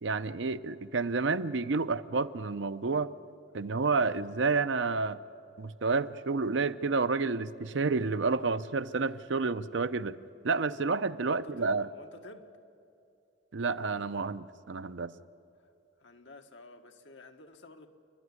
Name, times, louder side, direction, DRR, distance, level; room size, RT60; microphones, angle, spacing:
voice 1, 0.0-3.1 3.5-5.2 5.6-10.2 10.4-11.9 13.5-15.1, right 4 dB, 70° right, 13 dB, 0.6 m, -30 dB
voice 2, 11.2-12.5 16.0-17.9, left 2 dB, 70° left, 5 dB, 1.4 m, -51 dB
29.0 x 11.0 x 9.6 m, 2.6 s
head